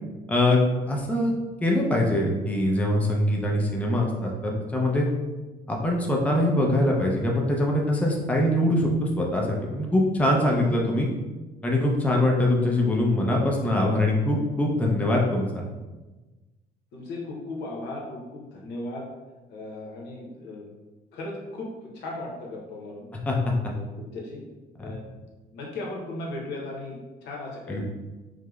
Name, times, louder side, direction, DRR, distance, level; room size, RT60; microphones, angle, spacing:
voice 1, 0.3-1.3 1.6-5.0 5.7-11.1 11.6-15.6 23.3-23.4 27.7-27.8, left 1 dB, 10° left, -1 dB, 0.5 m, -23 dB
voice 2, 10.2-10.8 16.9-19.1 19.5-20.7 21.1-23.1 23.6-24.4 24.8-25.0 25.5-27.8, left 2 dB, 80° left, -2 dB, 0.8 m, -37 dB
4.8 x 2.0 x 2.3 m, 1.2 s
cardioid pair, 110°, 17 cm